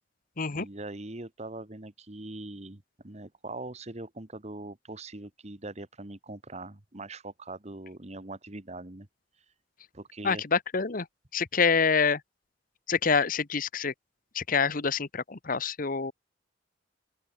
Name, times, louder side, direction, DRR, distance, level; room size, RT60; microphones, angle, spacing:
voice 1, 0.5-9.1 9.9-10.4, right 2 dB, 40° right, 1.7 m, -42 dB
voice 2, 10.2-11.1 11.3-12.2 12.9-13.9 14.3-16.1, left 5 dB, 50° left, 1.1 m, -26 dB
open air
head